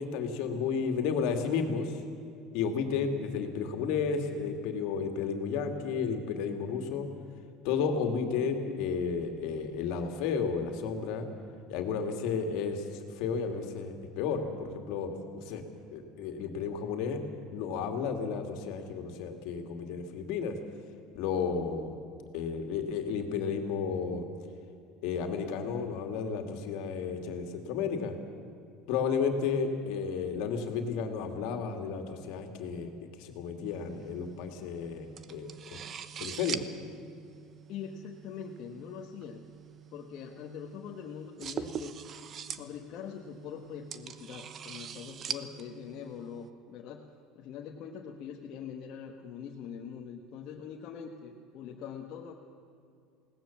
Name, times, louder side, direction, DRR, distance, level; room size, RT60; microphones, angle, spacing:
voice 1, 0.0-2.0 2.5-7.1 7.6-11.3 11.7-12.8 13.2-15.6 15.9-17.2 17.5-20.6 21.1-21.9 22.3-24.3 25.0-28.1 28.9-32.9 33.2-35.8 36.2-36.7, left 6 dB, 65° left, 5 dB, 2.5 m, -32 dB
sound 1, 33.6-46.5, right 7 dB, 35° right, 0.9 m, -44 dB
voice 2, 37.7-39.4 39.9-42.0 42.5-47.1 47.3-52.3, left 7 dB, 50° left, -1 dB, 1.5 m, -43 dB
20.5 x 18.0 x 7.4 m, 2.5 s
cardioid pair, 140°, 0 cm